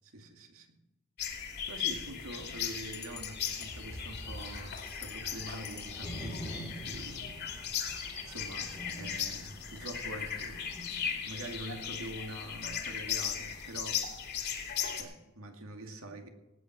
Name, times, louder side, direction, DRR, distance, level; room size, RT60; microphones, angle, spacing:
voice 1, 0.0-0.8 1.7-7.3 8.3-10.6 11.0-14.1 14.6-16.3, right 1 dB, 80° right, 4 dB, 2.3 m, -45 dB
sound 1, 1.2-15.0, left 8 dB, 50° left, 2.7 m, -37 dB
sound 2, 2.1-13.7, equal, 5° left, 2.2 m, -48 dB
sound 3, 2.8-3.7 4.4-6.0, left 9 dB, 70° left, 3.2 m, -48 dB
18.5 x 9.0 x 6.0 m, 1.0 s
head